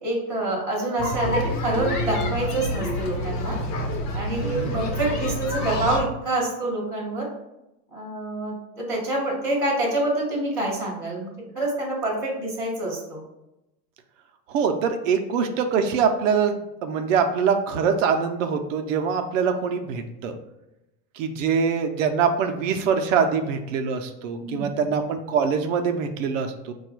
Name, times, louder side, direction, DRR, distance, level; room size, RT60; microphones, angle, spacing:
voice 1, 0.0-3.5 4.1-7.3 7.9-13.2 24.4-24.8, right 2 dB, 5° left, -17 dB, 0.3 m, -27 dB
sound 1, 1.0-6.0, left 1 dB, 70° left, 0.9 m, -27 dB
voice 2, 14.5-20.3 21.2-26.7, right 6 dB, 55° right, 6 dB, 0.5 m, -24 dB
4.8 x 2.3 x 4.5 m, 0.91 s
supercardioid pair, 170°, 47 cm